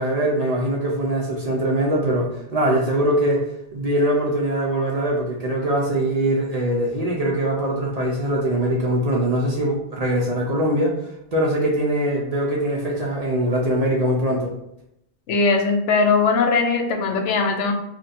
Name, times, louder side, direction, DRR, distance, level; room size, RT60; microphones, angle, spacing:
voice 1, 0.0-3.4 3.7-11.0 11.3-14.5, right 1 dB, 40° right, -3 dB, 0.6 m, -22 dB
voice 2, 15.3-17.7, left 4 dB, 80° left, 3 dB, 0.9 m, -20 dB
2.9 x 2.7 x 4.1 m, 0.79 s
omnidirectional pair, 1.2 m